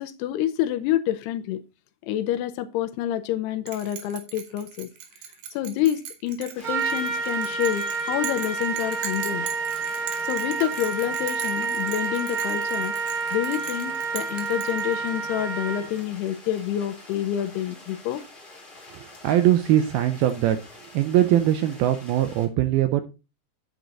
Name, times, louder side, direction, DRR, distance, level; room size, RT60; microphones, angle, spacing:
voice 1, 0.0-1.6 2.0-4.9 5.5-9.5 10.2-13.0 13.3-18.2, left 11 dB, 80° left, 2.5 m, -28 dB
Bell, 3.7-15.3, right 8 dB, 65° right, 3.2 m, -40 dB
sound 1, 6.5-22.5, left 2 dB, 15° left, 2.0 m, -47 dB
Trumpet, 6.6-16.0, right 5 dB, 45° right, 1.7 m, -29 dB
voice 2, 18.9-20.6 20.9-23.0, right 12 dB, 85° right, 2.2 m, -21 dB
8.8 x 8.2 x 3.8 m
omnidirectional pair, 5.0 m